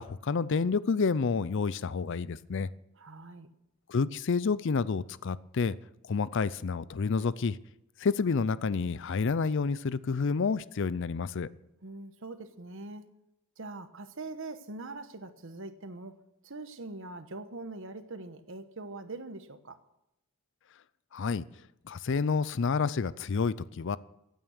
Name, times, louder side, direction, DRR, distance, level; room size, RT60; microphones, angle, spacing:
voice 1, 0.0-2.7 3.9-5.8 6.0-7.6 8.0-11.5 21.1-21.4 21.9-24.0, left 5 dB, 55° left, 18 dB, 0.5 m, -29 dB
voice 2, 3.0-3.5 11.8-13.1 13.6-19.8, right 2 dB, 60° right, 10 dB, 1.2 m, -43 dB
16.0 x 9.3 x 6.5 m, 0.84 s
head